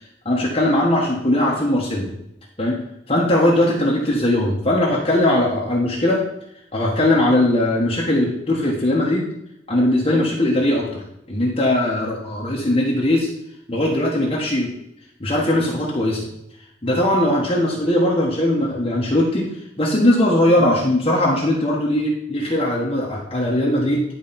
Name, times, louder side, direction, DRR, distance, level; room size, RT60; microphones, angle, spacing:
voice 1, 0.2-2.1 2.6-2.8 3.1-6.2 6.7-9.2 9.7-10.9 11.3-13.3 13.7-14.7 15.2-16.3 16.8-19.5 19.8-24.0, left 1 dB, 35° left, -4 dB, 1.4 m, -19 dB
11.0 x 4.7 x 4.3 m, 0.80 s
head